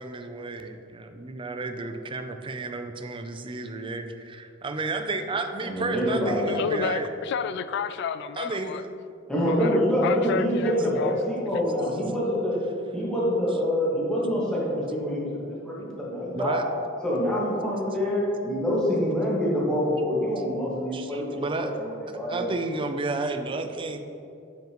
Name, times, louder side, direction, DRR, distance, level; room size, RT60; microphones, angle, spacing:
voice 1, 0.0-7.1 8.4-8.8 16.3-16.7 20.9-21.7 22.3-24.0, right 3 dB, 25° right, 7 dB, 0.4 m, -32 dB
voice 2, 5.6-6.5 9.3-12.6 12.9-16.7 17.0-22.5, equal, 5° left, -7 dB, 1.7 m, -26 dB
voice 3, 6.6-8.8 9.5-11.2 11.5-11.6, left 6 dB, 60° left, 13 dB, 0.3 m, -31 dB
7.7 x 7.1 x 3.0 m, 2.6 s
head